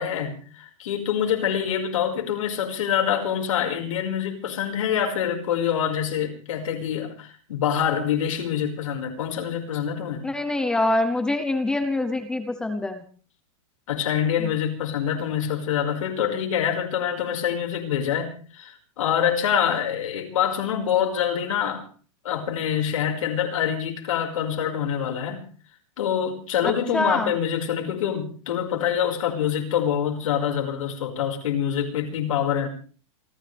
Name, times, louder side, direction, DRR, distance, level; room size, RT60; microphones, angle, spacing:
voice 1, 0.0-10.3 13.9-21.8 22.2-25.5 26.0-32.7, left 9 dB, 80° left, 5.4 m, -25 dB
voice 2, 10.2-13.0 14.4-14.5 26.6-27.3, left 2 dB, 5° left, 0.8 m, -25 dB
28.0 x 14.5 x 3.5 m
supercardioid pair, 180°, 17 cm